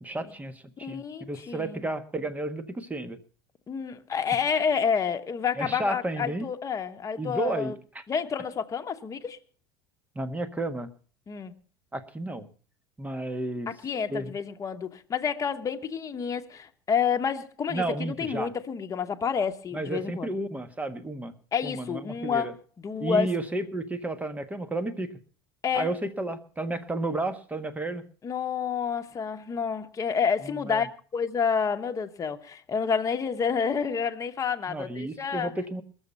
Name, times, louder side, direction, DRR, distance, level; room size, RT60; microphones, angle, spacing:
voice 1, 0.0-3.2 5.6-6.5 7.2-8.0 10.1-10.9 11.9-12.5 13.0-13.7 14.1-14.3 17.7-18.5 19.7-21.3 21.6-22.5 23.0-25.1 25.7-28.0 30.4-30.8 34.7-35.8, right 2 dB, 15° right, 1.4 m, -32 dB
voice 2, 0.8-1.9 3.7-7.8 8.1-9.4 11.3-11.5 13.7-20.3 21.5-22.5 22.8-23.3 25.6-25.9 28.2-35.5, left 6 dB, 30° left, 1.2 m, -29 dB
21.5 x 7.3 x 5.4 m
supercardioid pair, 95°, 12 cm